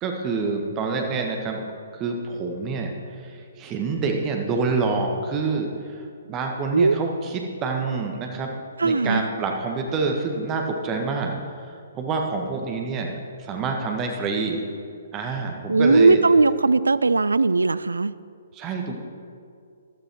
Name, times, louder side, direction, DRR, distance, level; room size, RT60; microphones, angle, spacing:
voice 1, 0.0-1.6 1.9-8.5 8.8-11.4 11.9-14.6 15.1-16.2 18.5-19.0, right 4 dB, 20° right, 3 dB, 1.5 m, -27 dB
voice 2, 8.8-9.2 15.7-18.1, right 3 dB, 70° right, 18 dB, 0.4 m, -18 dB
13.5 x 12.0 x 4.5 m, 2.3 s
figure-of-eight pair, 125°, 0 cm